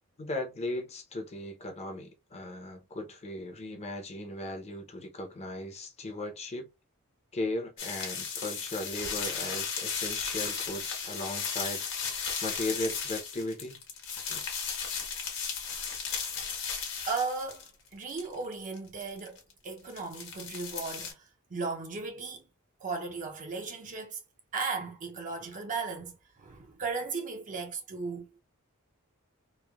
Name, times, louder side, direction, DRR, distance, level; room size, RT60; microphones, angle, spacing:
voice 1, 0.2-6.7 7.3-11.8 12.4-13.8 14.3-14.5, left 1 dB, 30° left, 0.6 m, -37 dB
sound 1, 7.8-17.7 18.1-19.5 19.9-21.1, left 6 dB, 60° left, 0.9 m, -35 dB
voice 2, 17.1-21.2 21.5-22.4 22.8-24.2 24.5-26.1 26.4-28.4, right 4 dB, 35° right, 0.5 m, -36 dB
3.1 x 2.1 x 2.2 m
head